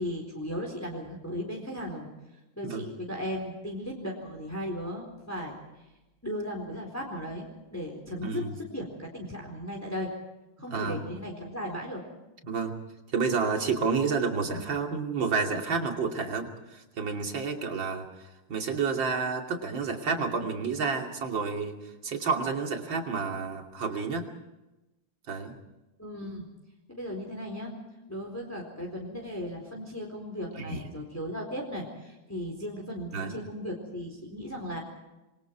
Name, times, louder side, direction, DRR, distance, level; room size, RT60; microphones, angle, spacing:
voice 1, 0.0-2.1 2.6-5.6 6.2-10.1 10.6-12.0 26.0-26.5 26.9-27.7 28.1-34.8, equal, 5° left, 0 dB, 4.0 m, -36 dB
voice 2, 8.2-8.5 10.7-11.0 12.4-12.7 13.1-21.8 22.0-24.3 25.3-25.6 30.6-30.8 33.1-33.4, right 5 dB, 60° right, 2 dB, 3.4 m, -30 dB
28.0 x 23.0 x 4.7 m, 1.0 s
omnidirectional pair, 2.3 m